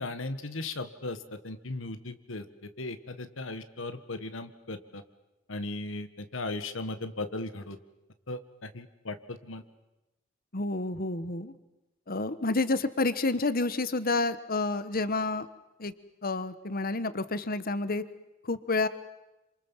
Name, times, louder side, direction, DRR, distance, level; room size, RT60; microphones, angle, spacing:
voice 1, 0.0-2.4 2.8-5.0 5.5-7.8 8.3-9.6, left 2 dB, 70° left, 10 dB, 1.7 m, -37 dB
voice 2, 10.5-11.5 12.1-15.5 15.8-15.9 16.2-18.0 18.4-18.9, left 3 dB, 50° left, 14 dB, 1.4 m, -29 dB
27.5 x 26.5 x 7.4 m, 1.0 s
head